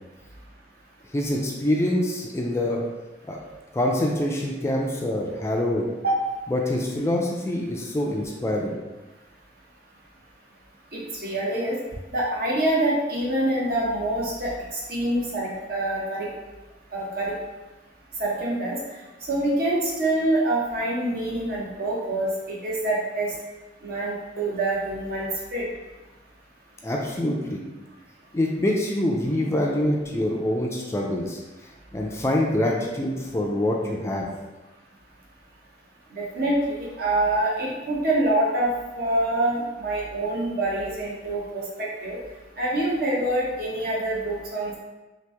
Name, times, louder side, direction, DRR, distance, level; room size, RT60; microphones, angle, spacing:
voice 1, 1.1-2.8 3.3-3.4 3.7-5.9 6.5-8.7 26.8-27.6 28.3-31.4 31.9-34.3, left 1 dB, 15° left, -1 dB, 0.3 m, -25 dB
voice 2, 10.9-11.8 12.1-16.3 16.9-17.3 18.2-18.8 19.3-23.3 23.8-25.6 36.1-38.7 39.0-42.2 42.6-44.8, right 1 dB, 55° right, -4 dB, 0.9 m, -25 dB
2.9 x 2.6 x 3.3 m, 1.1 s
head